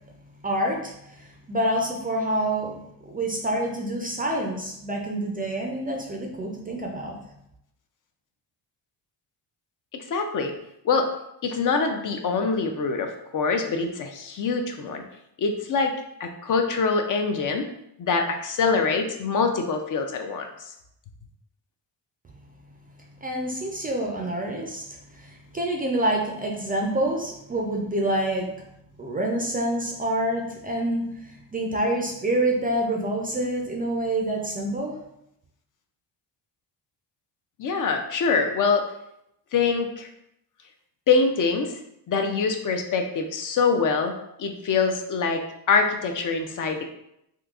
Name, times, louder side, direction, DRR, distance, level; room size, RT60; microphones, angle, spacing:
voice 1, 0.4-7.2 23.2-28.5 29.0-35.0, right 1 dB, 20° right, 0 dB, 0.3 m, -27 dB
voice 2, 10.1-10.5 10.8-11.1 11.4-15.0 15.4-15.9 16.2-17.7 18.0-20.7 37.6-38.8 39.5-40.1 41.1-41.7 42.1-45.4 45.7-46.9, left 4 dB, 50° left, 5 dB, 0.5 m, -24 dB
3.7 x 2.7 x 2.3 m, 0.78 s
cardioid pair, 115°, 43 cm